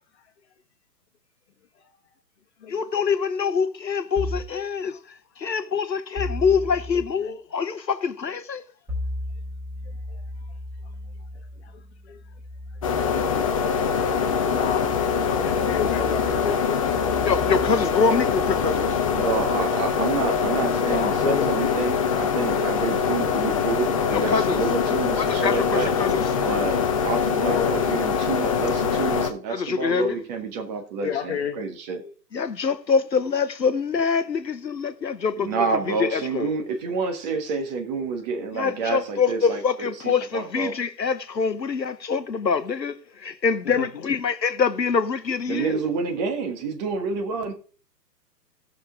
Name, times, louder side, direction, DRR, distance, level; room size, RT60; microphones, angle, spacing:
voice 1, 2.7-5.0 5.4-8.6 17.2-19.0 24.1-24.6 25.2-26.3 29.5-30.2 32.3-36.5 38.5-45.8, left 5 dB, 80° left, 0.9 m, -25 dB
sound 1, 4.2-4.6 6.1-7.1 8.9-20.2, left 1 dB, 5° right, 2.3 m, -36 dB
voice 2, 11.6-12.2 14.2-14.9 15.2-16.8 20.9-21.5 27.4-27.8 31.0-31.6 32.0-32.1 43.6-43.9, left 8 dB, 40° left, 1.4 m, -30 dB
sound 2, 12.8-29.3, left 6 dB, 20° left, 0.7 m, -23 dB
voice 3, 19.2-25.9 26.4-32.0 35.4-40.7 45.5-47.5, right 5 dB, 25° right, 1.5 m, -28 dB
17.0 x 6.5 x 3.6 m
figure-of-eight pair, 125°, 50 cm